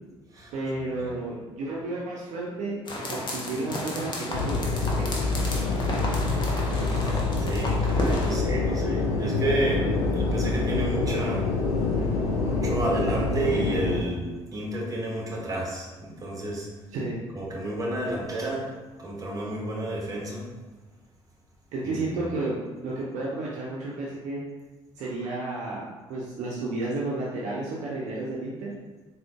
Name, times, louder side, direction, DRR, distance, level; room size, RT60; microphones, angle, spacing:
voice 1, 0.5-2.8 3.1-5.1 16.9-17.2 21.7-24.4 25.0-28.7, right 2 dB, 55° right, -5 dB, 0.6 m, -32 dB
sound 1, 2.9-8.4, left 1 dB, 30° left, 0.7 m, -33 dB
sound 2, 4.3-14.0, left 3 dB, 70° left, 0.5 m, -26 dB
voice 2, 6.6-11.5 12.4-16.7 17.3-18.7 19.0-20.5 21.8-22.2, right 1 dB, 25° right, -3 dB, 1.0 m, -31 dB
3.7 x 2.7 x 2.4 m, 1.3 s
figure-of-eight pair, 50°, 15 cm